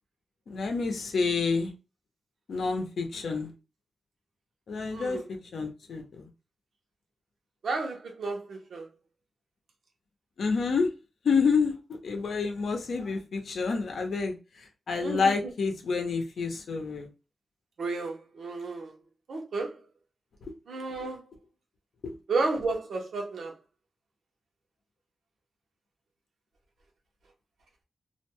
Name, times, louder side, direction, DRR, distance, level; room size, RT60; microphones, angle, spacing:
voice 1, 0.5-1.7 2.5-3.5 4.7-6.3 10.4-10.9 11.2-17.1 20.4-20.5 22.0-22.1, left 4 dB, 85° left, 0.6 m, -29 dB
voice 2, 7.6-8.4 8.7-8.8 15.0-15.2 17.8-18.9 19.3-19.7 20.7-21.2 22.3-23.5, right 3 dB, 90° right, 0.8 m, -31 dB
2.5 x 2.2 x 2.8 m
wide cardioid pair, 130°, 0 cm